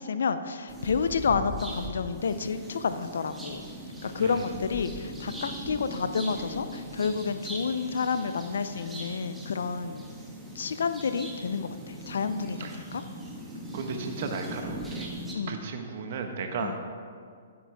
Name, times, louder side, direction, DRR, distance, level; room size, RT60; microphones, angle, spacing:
voice 1, 0.0-3.7 4.0-10.1 10.5-13.0 15.3-15.6 16.6-16.8, left 5 dB, 75° left, 11 dB, 0.5 m, -30 dB
sound 1, 0.7-15.3, equal, 5° right, 1.5 m, -40 dB
voice 2, 4.1-4.5 12.6-12.8 13.7-15.1 15.5-16.9, right 4 dB, 55° right, 5 dB, 1.2 m, -35 dB
11.5 x 8.7 x 3.4 m, 2.1 s
hypercardioid pair, 130°, 0 cm